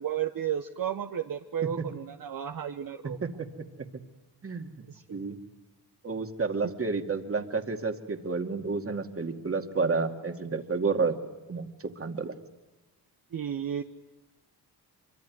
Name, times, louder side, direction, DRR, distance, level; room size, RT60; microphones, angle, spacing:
voice 1, 0.0-3.2 4.9-5.2 13.3-13.8, right 9 dB, 60° right, 7 dB, 1.2 m, -33 dB
voice 2, 3.2-3.6 4.4-4.8 5.1-5.4 6.0-11.2 11.5-12.4, right 4 dB, 35° right, 6 dB, 2.4 m, -30 dB
24.5 x 24.5 x 9.4 m, 1.1 s
cardioid pair, 90°, 39 cm